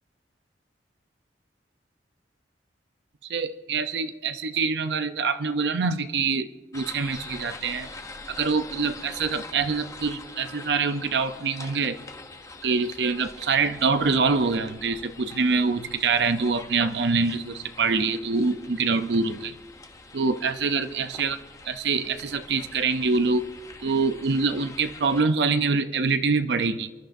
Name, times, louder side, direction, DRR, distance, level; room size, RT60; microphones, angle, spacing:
voice 1, 3.3-7.9 8.3-12.0 12.6-19.5 20.1-21.4 21.7-23.5 23.8-26.9, right 4 dB, 65° right, 10 dB, 0.6 m, -25 dB
sound 1, 6.7-25.2, left 3 dB, 20° left, 0.8 m, -44 dB
29.0 x 11.5 x 2.6 m, 1.3 s
head